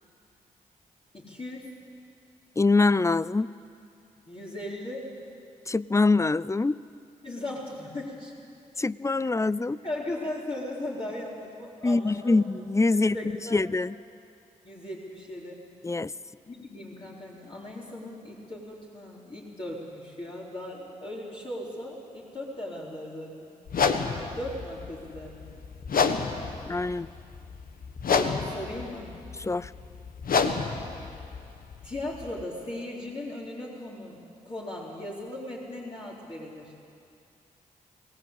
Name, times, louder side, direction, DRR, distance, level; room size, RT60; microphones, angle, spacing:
voice 1, 1.1-1.7 4.3-5.1 7.2-8.3 9.2-9.3 9.8-12.4 13.1-13.6 14.6-15.6 16.5-23.5 24.2-25.5 28.2-29.1 31.8-34.2 34.4-36.7, left 1 dB, 35° left, -5 dB, 4.1 m, -37 dB
voice 2, 2.6-3.5 5.7-6.8 8.8-9.8 11.8-13.2 13.5-13.9 15.8-16.1 26.7-27.1 29.4-29.7, left 3 dB, 20° left, 20 dB, 0.5 m, -24 dB
sound 1, 23.7-32.4, left 5 dB, 65° left, 1.4 m, -30 dB
23.0 x 17.5 x 8.2 m, 2.5 s
supercardioid pair, 45°, 16 cm